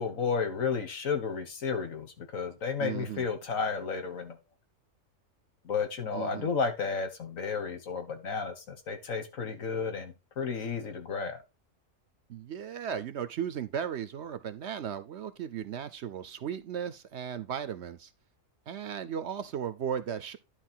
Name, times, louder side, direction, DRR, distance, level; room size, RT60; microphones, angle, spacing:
voice 1, 0.0-4.4 5.6-11.4, left 5 dB, 85° left, 1.8 m, -32 dB
voice 2, 2.8-3.3 6.1-6.5 12.3-18.1 18.7-20.4, right 8 dB, 65° right, 0.9 m, -36 dB
11.0 x 4.4 x 4.4 m
omnidirectional pair, 1.4 m